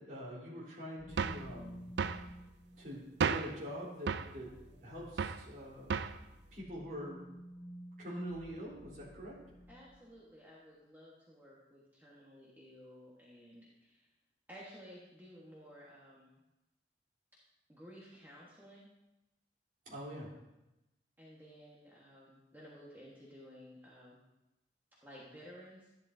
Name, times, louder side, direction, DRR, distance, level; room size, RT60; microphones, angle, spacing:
voice 1, 0.0-1.9 2.8-4.5 4.8-6.0 6.3-7.2 8.0-9.4 19.9-20.3, equal, 50° right, -6 dB, 4.0 m, -45 dB
sound 1, 1.0-10.2, equal, 90° left, 2.1 m, -53 dB
sound 2, 1.2-1.5 2.0-2.3 3.2-3.6 4.1-4.3 5.2-5.5 5.9-6.2, right 6 dB, 75° right, 0.4 m, -33 dB
voice 2, 9.7-14.1 14.5-16.3 17.7-18.9 21.2-24.2 25.0-25.9, equal, 10° right, -6 dB, 1.5 m, -54 dB
12.0 x 11.5 x 2.8 m, 0.98 s
head